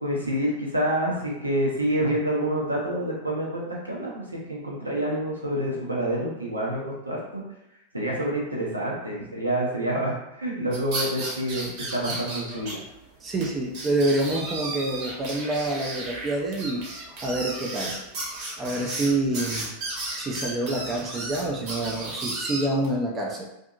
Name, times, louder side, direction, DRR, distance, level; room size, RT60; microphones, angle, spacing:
voice 1, 0.0-7.4 7.9-12.8, right 1 dB, 85° right, -4 dB, 0.7 m, -27 dB
sound 1, 10.7-12.7 13.0-13.1 13.4-13.5 13.7-22.9, right 2 dB, 45° right, 0.9 m, -34 dB
voice 2, 13.2-16.9 17.2-18.0 18.6-19.7 20.2-23.5, right 2 dB, 20° right, -1 dB, 0.5 m, -27 dB
2.6 x 2.5 x 2.4 m, 0.86 s
figure-of-eight pair, 90°, 0 cm